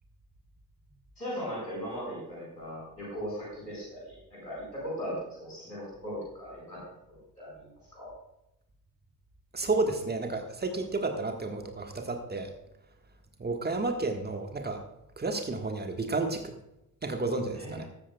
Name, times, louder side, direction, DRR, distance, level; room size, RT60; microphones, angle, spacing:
voice 1, 1.2-6.8 7.1-8.1 17.5-17.9, equal, 90° left, -5 dB, 5.0 m, -38 dB
voice 2, 9.5-12.5 13.4-14.8 15.2-16.6 17.0-17.9, right 3 dB, 20° right, 5 dB, 1.5 m, -31 dB
14.0 x 13.0 x 2.3 m, 0.84 s
figure-of-eight pair, 50°, 49 cm